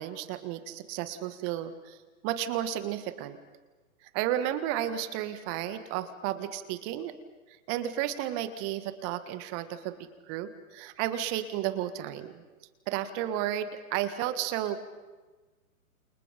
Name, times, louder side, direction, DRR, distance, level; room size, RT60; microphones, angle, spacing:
voice 1, 0.0-2.0 2.2-3.4 4.1-7.1 7.7-12.3 12.9-14.9, right 12 dB, 30° right, 11 dB, 1.8 m, -32 dB
29.0 x 28.5 x 5.2 m, 1.2 s
hypercardioid pair, 130°, 43 cm